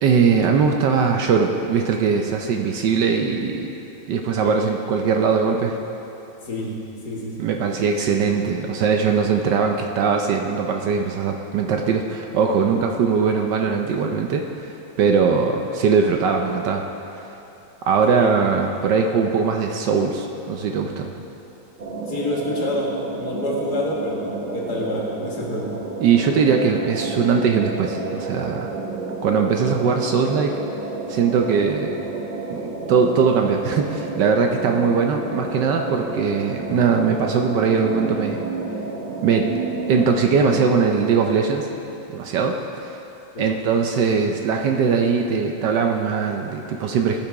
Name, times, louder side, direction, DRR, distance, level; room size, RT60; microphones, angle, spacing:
voice 1, 0.0-3.7 4.1-5.8 7.4-14.7 15.0-16.8 17.1-17.3 17.9-21.1 26.0-28.7 29.2-30.6 31.1-32.0 32.5-38.4 39.2-39.5 39.9-41.7 42.1-42.6 43.4-47.2, right 5 dB, 70° right, 3 dB, 1.2 m, -20 dB
voice 2, 7.0-7.5 18.1-18.3 22.1-24.2 24.5-25.7 43.3-43.6, left 1 dB, 55° left, -3 dB, 2.0 m, -27 dB
sound 1, 21.8-41.3, right 3 dB, 50° right, 0.5 m, -31 dB
17.0 x 5.8 x 4.6 m, 2.9 s
omnidirectional pair, 2.2 m